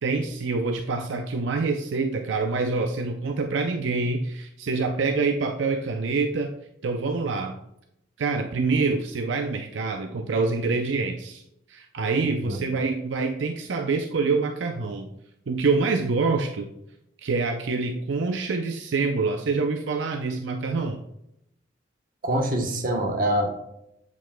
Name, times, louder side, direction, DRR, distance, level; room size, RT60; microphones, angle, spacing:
voice 1, 0.0-6.5 6.8-7.6 8.2-11.4 11.7-15.1 15.5-16.7 17.2-21.0, right 4 dB, 75° right, 4 dB, 0.5 m, -26 dB
voice 2, 22.2-23.6, right 1 dB, 45° right, 3 dB, 1.0 m, -25 dB
8.0 x 7.3 x 2.2 m, 0.81 s
head